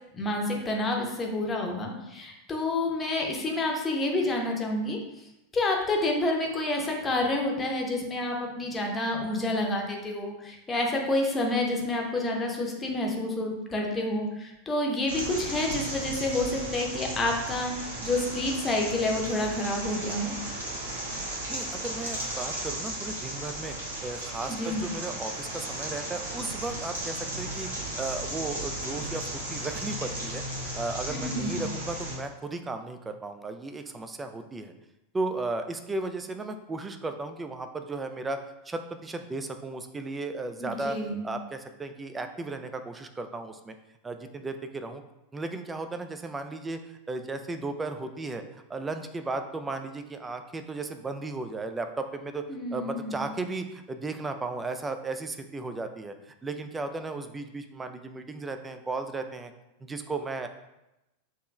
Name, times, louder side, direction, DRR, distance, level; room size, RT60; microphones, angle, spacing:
voice 1, 0.1-5.0 5.5-20.3 24.5-24.8 31.1-31.6 40.6-41.3 52.5-53.3, left 2 dB, 20° left, 0 dB, 0.9 m, -29 dB
sound 1, 15.1-32.2, right 1 dB, 70° right, 1.1 m, -35 dB
voice 2, 21.5-23.8 24.0-27.7 28.0-34.7 35.1-43.8 44.0-45.0 45.3-52.4 52.7-59.5 59.8-60.5, right 3 dB, 15° right, 8 dB, 0.4 m, -35 dB
6.8 x 2.9 x 2.4 m, 0.92 s
figure-of-eight pair, 85°, 0 cm